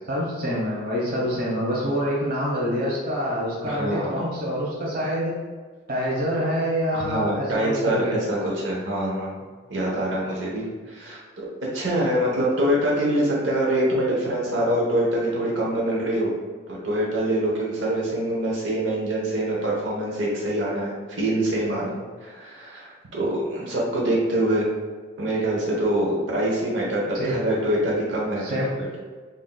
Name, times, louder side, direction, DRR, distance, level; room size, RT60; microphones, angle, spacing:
voice 1, 0.1-5.3 5.9-8.1 27.1-27.3 28.4-28.7, equal, 50° right, -4 dB, 1.0 m, -26 dB
voice 2, 3.6-4.1 7.0-9.4 9.7-11.2 11.7-16.3 16.7-24.7 25.2-28.9, right 1 dB, 85° right, -4 dB, 0.9 m, -25 dB
5.7 x 2.6 x 2.2 m, 1.5 s
head